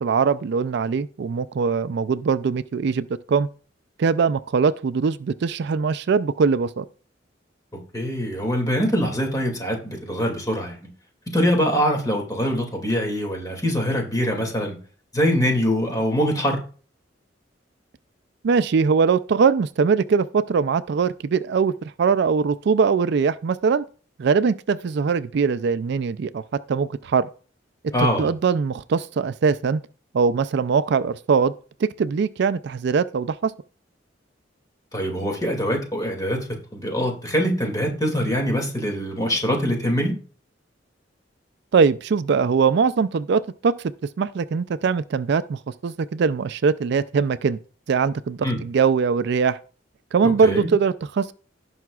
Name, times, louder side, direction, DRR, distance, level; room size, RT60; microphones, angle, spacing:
voice 1, 0.0-3.5 4.0-6.9 18.4-23.8 24.2-26.4 26.7-27.3 27.8-29.8 30.1-31.5 31.8-33.5 41.7-43.7 44.2-47.6 47.9-49.6 50.1-51.3, right 5 dB, 65° right, 0.4 m, -21 dB
voice 2, 7.9-10.8 11.3-14.8 15.1-16.6 27.9-28.3 34.9-36.5 36.7-40.2 48.4-48.6 50.2-50.7, equal, 20° left, 2.3 m, -23 dB
17.0 x 5.7 x 2.4 m
head